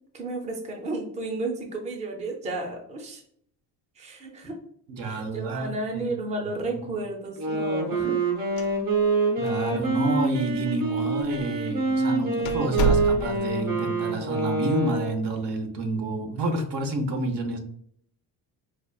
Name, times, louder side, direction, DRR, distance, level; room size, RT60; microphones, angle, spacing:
voice 1, 0.1-3.2 4.0-4.6 5.0-8.1, right 2 dB, 15° right, 1 dB, 0.5 m, -33 dB
voice 2, 4.9-6.1 6.7-6.9 7.5-8.2 9.4-17.6, right 2 dB, 75° right, 4 dB, 0.9 m, -29 dB
Wind instrument woodwind instrument, 7.3-15.2, right 3 dB, 60° right, 1.3 m, -26 dB
sound 1, 8.4-9.2 9.5-9.6 10.3-10.4 11.2-11.4 11.8-11.9 12.4-13.6, right 2 dB, 60° left, 0.5 m, -27 dB
4.8 x 2.3 x 2.3 m, 0.65 s
cardioid pair, 160°, 41 cm